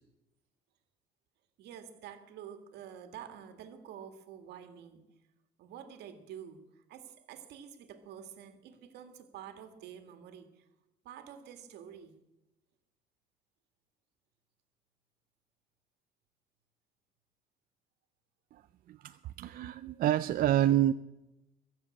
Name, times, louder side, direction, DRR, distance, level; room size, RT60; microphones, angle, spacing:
voice 1, 1.6-5.0 5.6-10.6 11.0-12.1, right 9 dB, 80° right, 2.0 m, -48 dB
voice 2, 18.9-20.9, right 12 dB, 60° right, 0.5 m, -28 dB
22.0 x 7.5 x 8.6 m
cardioid pair, 110°, 17 cm